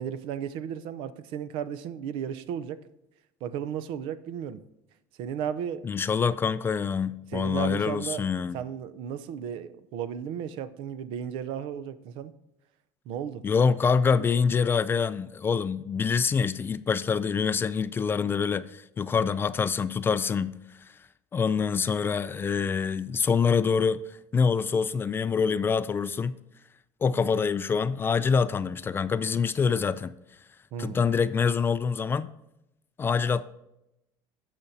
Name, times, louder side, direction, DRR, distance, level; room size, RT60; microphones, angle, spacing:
voice 1, 0.0-2.8 3.4-4.6 5.2-5.9 7.3-8.3 8.5-12.3 13.1-13.4 14.1-14.2 30.7-31.0, right 8 dB, 70° right, 0.6 m, -34 dB
voice 2, 5.8-8.6 13.4-20.6 20.9-21.0 21.3-26.4 27.0-30.1 30.8-32.3 33.0-33.4, left 6 dB, 25° left, 0.3 m, -25 dB
15.5 x 5.9 x 2.8 m
cardioid pair, 125°, 10 cm